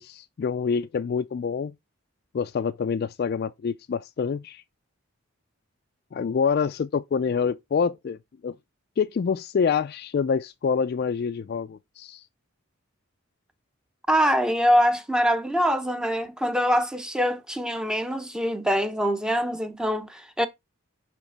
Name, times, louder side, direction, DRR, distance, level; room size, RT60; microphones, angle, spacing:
voice 1, 0.0-1.7 2.3-4.6 6.1-8.2 8.4-8.6 9.0-12.2, left 6 dB, 45° left, 0.3 m, -26 dB
voice 2, 14.1-20.5, equal, 5° right, 0.6 m, -24 dB
5.7 x 5.1 x 3.3 m
head